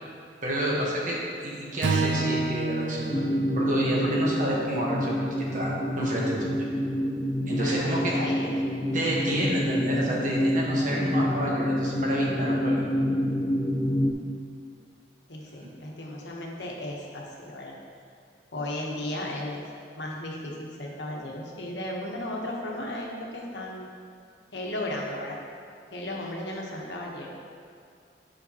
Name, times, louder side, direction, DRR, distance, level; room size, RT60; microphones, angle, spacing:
voice 1, 0.4-1.2 1.4-6.7 7.5-8.2 8.9-12.8, equal, 45° right, -4 dB, 1.2 m, -29 dB
Strum, 1.8-6.2, right 3 dB, 85° right, 0.6 m, -31 dB
sound 1, 3.1-14.1, equal, 25° left, 0.5 m, -27 dB
voice 2, 7.5-8.5 15.3-17.7 18.5-19.6 20.0-23.9 24.5-25.4 25.9-27.3, left 1 dB, 80° left, -2 dB, 1.0 m, -35 dB
8.4 x 5.1 x 2.9 m, 2.4 s
head